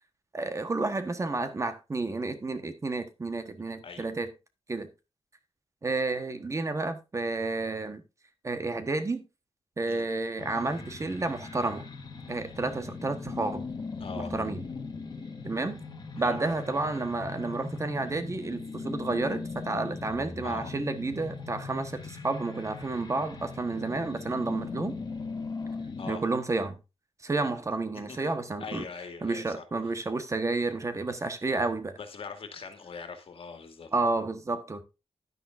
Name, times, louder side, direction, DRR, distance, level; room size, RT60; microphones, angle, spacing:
voice 1, 0.3-4.3 4.7-4.9 5.8-8.0 8.4-9.2 9.8-11.9 12.3-13.7 14.1-14.6 15.4-15.8 16.2-24.9 26.1-26.8 27.2-28.8 29.2-32.0 33.9-34.8, right 3 dB, 30° right, 1.2 m, -31 dB
sound 1, 10.4-26.1, left 4 dB, 45° left, 1.8 m, -39 dB
voice 2, 14.0-14.4 16.2-16.4 20.4-20.8 26.0-26.2 27.9-28.3 28.6-29.6 31.5-31.7 32.0-33.9, left 5 dB, 65° left, 2.1 m, -42 dB
11.0 x 10.0 x 2.5 m
wide cardioid pair, 135°, 10 cm